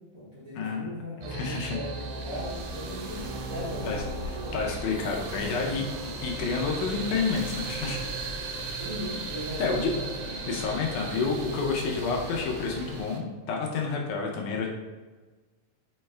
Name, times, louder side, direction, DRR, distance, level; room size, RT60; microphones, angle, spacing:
voice 1, 0.0-4.5 8.8-10.6, equal, 65° right, -9 dB, 1.5 m, -38 dB
voice 2, 0.5-0.9 1.3-1.8 3.8-8.0 8.6-8.8 9.6-10.0 10.5-14.7, left 4 dB, 80° left, 0 dB, 2.0 m, -30 dB
sound 1, 1.2-13.2, right 4 dB, 80° right, 1.9 m, -37 dB
sound 2, 2.2-13.0, left 1 dB, 60° left, 1.2 m, -42 dB
6.1 x 2.2 x 3.2 m, 1.3 s
omnidirectional pair, 3.7 m